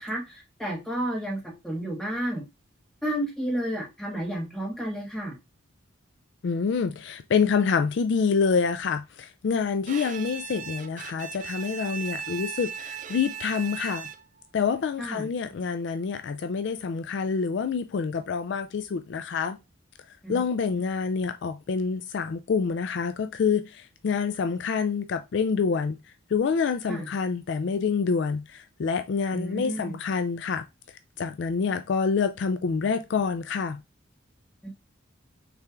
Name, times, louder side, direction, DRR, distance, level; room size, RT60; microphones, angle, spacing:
voice 1, 0.0-2.4 3.0-5.3 15.0-15.3 20.2-20.4 26.9-27.1 29.3-30.0 34.6-34.7, right 1 dB, 5° left, 1.5 m, -31 dB
voice 2, 6.4-14.1 14.5-19.6 20.3-26.0 26.3-30.6 31.2-33.8, left 5 dB, 55° left, 0.3 m, -27 dB
Bowed string instrument, 9.9-14.5, right 7 dB, 40° right, 0.3 m, -37 dB
5.6 x 3.5 x 2.4 m
head